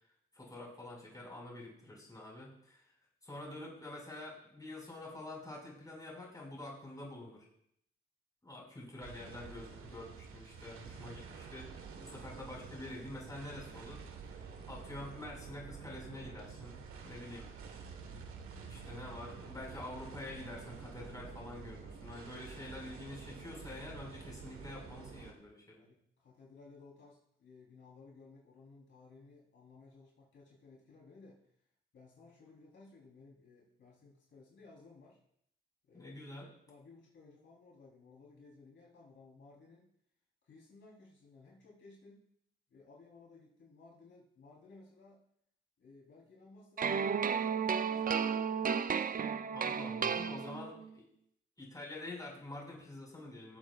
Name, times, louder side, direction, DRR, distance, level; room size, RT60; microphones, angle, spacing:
voice 1, 0.3-2.9 3.2-7.4 8.4-14.0 14.2-14.4 14.7-17.5 18.6-25.8 35.9-36.5 49.5-51.0 51.6-53.6, left 2 dB, 15° left, -3 dB, 5.0 m, -47 dB
sound 1, 9.0-25.3, right 5 dB, 90° right, 1.3 m, -49 dB
voice 2, 25.7-31.4 31.9-35.2 35.9-36.3 36.7-39.9 40.4-42.3 42.7-45.2 45.8-48.9, left 3 dB, 65° left, -4 dB, 3.5 m, -58 dB
sound 2, 46.8-50.9, right 7 dB, 40° right, 0.5 m, -33 dB
19.5 x 7.5 x 2.4 m, 0.71 s
cardioid pair, 70°, 21 cm